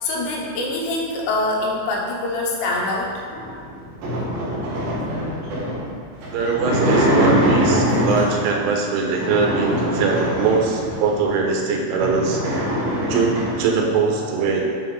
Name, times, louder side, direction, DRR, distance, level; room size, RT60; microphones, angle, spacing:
voice 1, 0.0-3.1 7.7-8.0, left 2 dB, 90° left, -2 dB, 3.8 m, -24 dB
sound 1, 3.3-8.5 9.0-11.1 11.6-11.7 11.9-13.7, equal, 55° right, 3.3 m, -23 dB
voice 2, 6.3-12.4 13.1-14.7, right 4 dB, 85° right, 1 dB, 3.4 m, -21 dB
9.9 x 4.2 x 5.1 m, 2.1 s
omnidirectional pair, 5.7 m